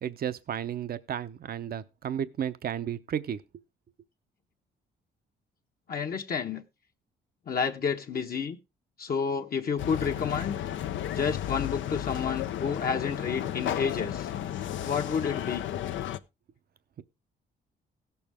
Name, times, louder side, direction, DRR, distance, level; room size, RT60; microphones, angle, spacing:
voice 1, 0.0-3.4, right 9 dB, 50° right, 0.7 m, -33 dB
voice 2, 5.9-6.6 7.5-8.6 9.0-10.6 11.1-14.3 14.8-15.7, left 6 dB, 50° left, 1.1 m, -30 dB
sound 1, 9.8-16.2, left 11 dB, 70° left, 0.7 m, -33 dB
16.0 x 7.0 x 3.5 m
cardioid pair, 90°, 20 cm